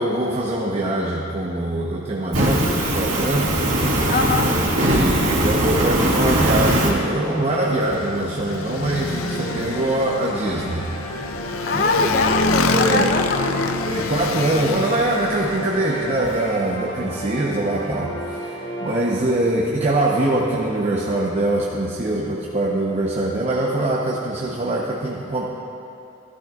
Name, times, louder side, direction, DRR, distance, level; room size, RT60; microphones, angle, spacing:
voice 1, 0.0-3.6 3.9-4.0 4.4-10.9 11.7-12.1 12.7-13.1 13.9-25.4, right 1 dB, 30° right, -4 dB, 0.8 m, -23 dB
sound 1, 2.3-19.4, right 1 dB, 30° left, 2.6 m, -35 dB
Fire, 2.3-6.9, right 1 dB, 75° right, 2.1 m, -20 dB
voice 2, 4.1-4.5 11.7-13.8, left 3 dB, 50° left, 4 dB, 0.8 m, -22 dB
Motorcycle, 6.0-16.5, left 3 dB, 90° left, 0.5 m, -28 dB
16.0 x 12.0 x 2.4 m, 2.8 s
head